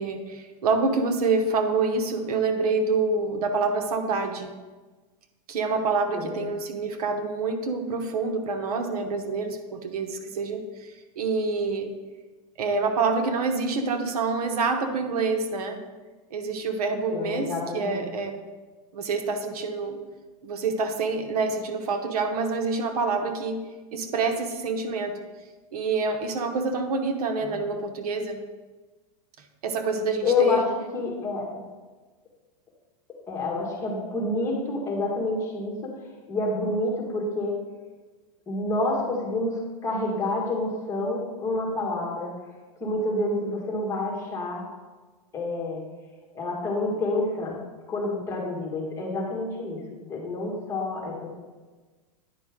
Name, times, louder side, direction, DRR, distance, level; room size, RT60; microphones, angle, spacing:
voice 1, 0.0-4.5 5.5-11.9 12.6-15.8 16.3-18.3 18.9-20.0 20.4-23.6 23.9-25.2 25.7-28.4 29.6-30.6, right 4 dB, 85° right, 6 dB, 1.0 m, -27 dB
voice 2, 6.1-6.4 17.1-18.1 27.4-27.6 30.2-30.7 30.9-31.6 33.3-35.9 36.3-37.6 38.5-42.3 42.8-44.7 45.3-45.8 46.3-47.6 47.9-49.8 50.1-51.3, left 2 dB, 15° left, -3 dB, 1.7 m, -28 dB
9.8 x 5.2 x 3.7 m, 1.3 s
supercardioid pair, 150°, 19 cm